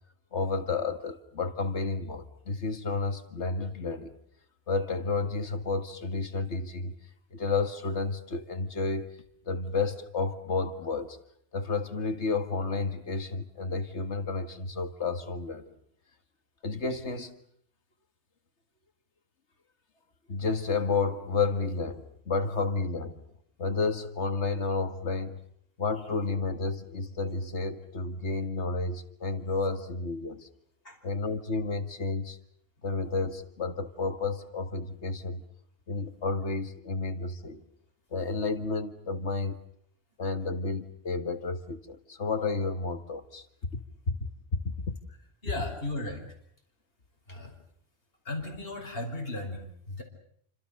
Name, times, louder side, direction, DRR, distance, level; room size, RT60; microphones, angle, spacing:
voice 1, 0.3-4.2 4.7-6.9 7.3-9.1 9.5-11.2 11.5-15.7 16.6-17.4 20.3-23.2 23.6-25.4 25.8-30.5 31.0-32.4 32.8-35.4 35.9-37.6 38.1-39.6 40.2-43.5 43.7-43.8 44.1-44.2 44.5-44.6 44.9-45.0, left 3 dB, 80° left, 2.2 m, -31 dB
voice 2, 45.4-46.2 47.3-47.5 48.2-50.0, left 2 dB, 55° left, 5.4 m, -36 dB
29.0 x 26.0 x 6.7 m
omnidirectional pair, 1.2 m